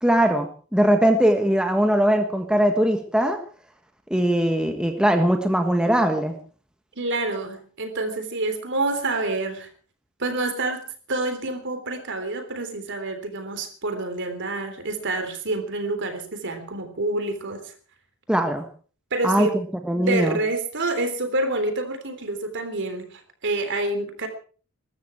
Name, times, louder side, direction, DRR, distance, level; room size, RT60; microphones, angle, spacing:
voice 1, 0.0-3.4 4.1-6.4 18.3-18.7 19.2-19.5 19.9-20.4, right 1 dB, 5° right, 5 dB, 1.5 m, -20 dB
voice 2, 7.0-9.7 10.2-10.8 11.1-17.7 19.1-19.6 19.9-24.3, right 2 dB, 55° right, 8 dB, 3.6 m, -27 dB
22.0 x 13.0 x 4.6 m, 0.41 s
head